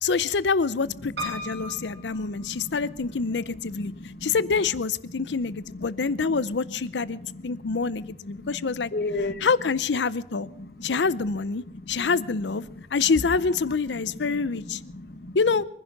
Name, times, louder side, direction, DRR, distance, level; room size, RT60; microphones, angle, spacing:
voice 1, 0.0-3.9 4.2-7.2 7.4-8.9 9.4-10.5 10.8-12.6 12.9-14.8 15.3-15.6, left 4 dB, 85° left, 18 dB, 0.6 m, -26 dB
Piano, 1.2-3.1 3.8-4.5 4.8-4.9 5.1-5.2, equal, 85° right, 5.8 m, -37 dB
voice 2, 1.3-2.9 3.3-4.3 5.2-6.1 6.7-6.8 7.2-9.5 10.6-10.9 11.8-12.1 12.8-12.9 14.3-15.4, left 2 dB, 60° left, 10 dB, 1.3 m, -37 dB
23.0 x 10.5 x 5.8 m, 0.71 s
head